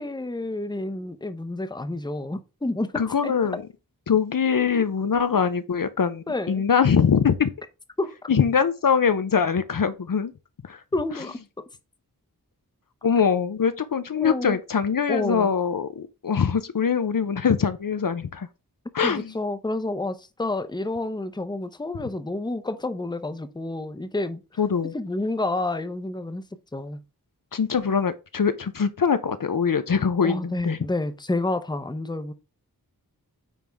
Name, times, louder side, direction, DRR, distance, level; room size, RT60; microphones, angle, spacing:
voice 1, 0.0-3.4 6.3-6.6 8.0-8.2 10.9-11.6 14.1-14.6 15.1-15.5 19.0-24.6 24.9-26.4 26.7-27.0 30.2-32.3, left 2 dB, 10° left, 0.7 m, -29 dB
voice 2, 3.0-3.6 4.1-7.5 8.3-10.3 10.6-10.8 13.0-18.5 18.9-19.3 24.6-24.9 27.5-30.8, left 6 dB, 60° left, 0.6 m, -23 dB
9.2 x 3.5 x 3.4 m
wide cardioid pair, 60°, 38 cm